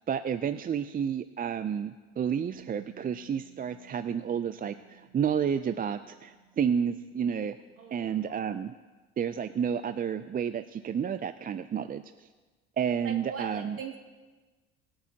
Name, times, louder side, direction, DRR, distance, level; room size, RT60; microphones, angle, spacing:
voice 1, 0.1-7.6 7.9-8.7 9.2-12.3 12.8-13.8, right 8 dB, 30° right, 11 dB, 0.5 m, -31 dB
Bass guitar, 2.4-8.7, right 8 dB, 85° right, 3.4 m, -59 dB
voice 2, 7.8-8.4 13.0-14.0, right 5 dB, 50° right, 2 dB, 2.3 m, -41 dB
20.5 x 8.6 x 2.9 m, 1.3 s
hypercardioid pair, 65°, 31 cm